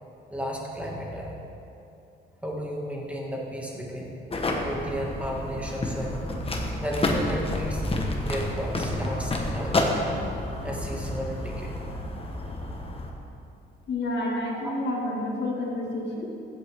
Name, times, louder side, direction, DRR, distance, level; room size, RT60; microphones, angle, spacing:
voice 1, 0.3-1.4 2.4-4.1 4.6-6.3 6.8-7.8 8.2-10.1 10.6-11.7 14.5-14.7, equal, 5° right, -3 dB, 2.2 m, -33 dB
sound 1, 4.3-13.1, left 1 dB, 30° left, 1.4 m, -29 dB
voice 2, 13.9-16.3, left 1 dB, 60° left, -2 dB, 2.3 m, -29 dB
14.5 x 8.4 x 3.7 m, 2.7 s
cardioid pair, 90°, 20 cm